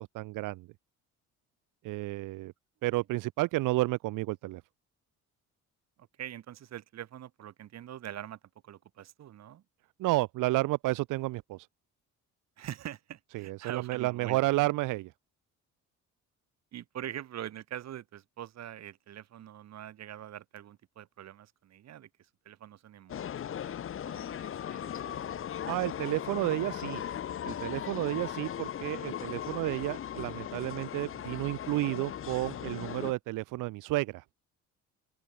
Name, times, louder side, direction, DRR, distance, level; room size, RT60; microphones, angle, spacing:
voice 1, 0.1-0.7 1.8-2.5 2.8-4.6 10.0-11.7 13.3-15.1 25.7-27.0 27.4-34.2, right 19 dB, 90° right, 1.5 m, -31 dB
voice 2, 6.2-9.6 12.6-14.5 16.7-25.4, right 11 dB, 60° right, 4.6 m, -44 dB
sound 1, 23.1-33.1, left 9 dB, 45° left, 1.4 m, -38 dB
open air
cardioid pair, 125°, 31 cm